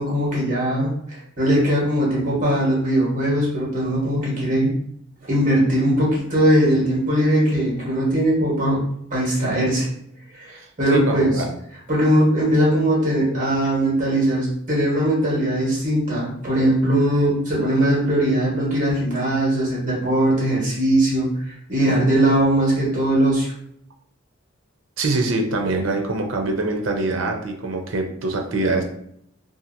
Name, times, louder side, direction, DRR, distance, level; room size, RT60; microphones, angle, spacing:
voice 1, 0.0-4.7 5.2-8.8 9.1-9.9 10.3-11.4 11.9-21.3 21.7-23.5, right 1 dB, 40° right, -5 dB, 1.4 m, -20 dB
voice 2, 10.9-11.5 25.0-28.8, right 2 dB, 80° right, 3 dB, 0.6 m, -24 dB
2.7 x 2.5 x 2.6 m, 0.70 s
head